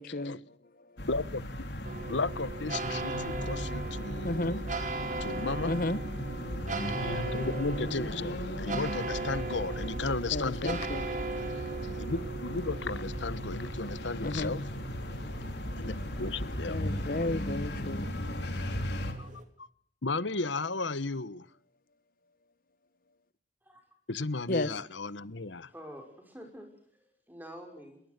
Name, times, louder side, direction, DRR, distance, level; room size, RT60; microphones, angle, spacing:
voice 1, 0.0-1.1 4.2-4.6 5.6-6.0 10.3-11.1 14.2-14.5 16.7-18.1 24.5-24.7, left 2 dB, 50° left, 1.2 m, -33 dB
sound 1, 1.0-19.1, equal, 65° left, 3.9 m, -36 dB
voice 2, 1.1-1.5 2.1-4.6 5.2-5.7 7.0-10.9 12.0-14.6 15.8-16.8 19.2-19.3 19.6-19.7 20.0-21.5 24.1-25.7, left 3 dB, 85° left, 1.2 m, -34 dB
sound 2, 1.8-19.4, right 4 dB, 40° right, 3.4 m, -39 dB
voice 3, 25.6-28.0, equal, 10° right, 5.7 m, -48 dB
28.5 x 22.0 x 6.8 m
head